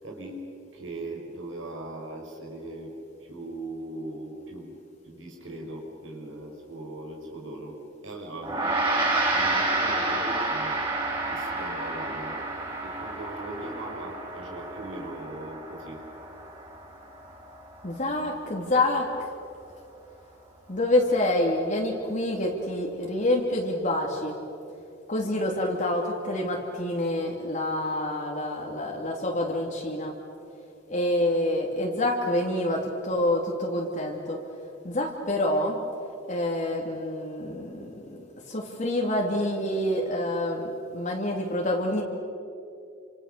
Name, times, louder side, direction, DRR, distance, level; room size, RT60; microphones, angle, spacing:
voice 1, 0.0-2.9 3.3-4.7 5.0-7.8 8.0-8.9 9.3-10.8 11.3-12.4 12.8-16.0, right 1 dB, 85° right, 0 dB, 5.1 m, -39 dB
Gong, 8.4-18.1, right 2 dB, 25° right, 5.8 m, -30 dB
voice 2, 17.8-19.3 20.7-24.4 25.1-30.1 30.9-34.4 34.8-35.8 36.3-38.2 38.5-42.0, left 1 dB, 40° left, -1 dB, 2.9 m, -27 dB
29.5 x 26.5 x 6.8 m, 2.7 s
head